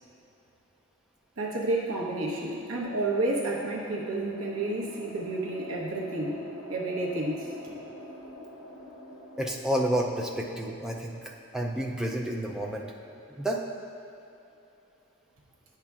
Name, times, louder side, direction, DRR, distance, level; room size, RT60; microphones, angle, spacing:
voice 1, 1.4-6.4 6.7-7.7, right 2 dB, 70° right, -3 dB, 1.0 m, -30 dB
sound 1, 2.1-12.4, left 1 dB, 75° left, 0.8 m, -47 dB
voice 2, 9.4-12.8 13.3-13.6, right 1 dB, 5° right, 0 dB, 0.3 m, -30 dB
9.0 x 5.7 x 2.4 m, 2.8 s
head